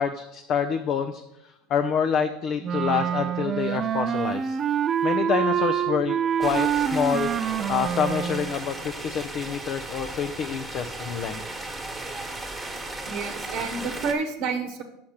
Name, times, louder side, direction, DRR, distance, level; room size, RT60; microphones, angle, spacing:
voice 1, 0.0-4.6 5.0-7.3 7.7-11.4, left 7 dB, 50° left, 7 dB, 0.5 m, -27 dB
Wind instrument woodwind instrument, 2.6-8.5, right 8 dB, 35° right, 0.3 m, -26 dB
sound 1, 6.4-14.1, right 2 dB, 10° right, 1.4 m, -36 dB
voice 2, 13.1-14.8, right 5 dB, 60° right, 5 dB, 0.9 m, -29 dB
5.8 x 5.7 x 6.5 m, 0.86 s
supercardioid pair, 105°, 0 cm